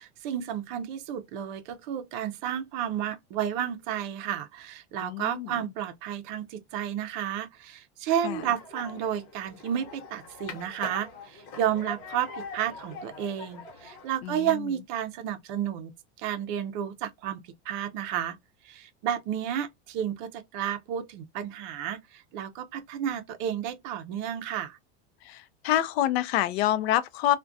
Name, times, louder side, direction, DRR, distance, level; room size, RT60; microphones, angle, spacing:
voice 1, 0.0-15.9 16.2-18.4 18.6-24.8, right 10 dB, 50° right, 0.4 m, -32 dB
voice 2, 5.0-5.6 8.2-8.4 14.2-14.5 25.2-27.4, left 12 dB, 75° left, 0.5 m, -27 dB
sound 1, 8.1-14.1, left 3 dB, 55° left, 1.1 m, -43 dB
2.3 x 2.1 x 2.5 m
supercardioid pair, 160°, 31 cm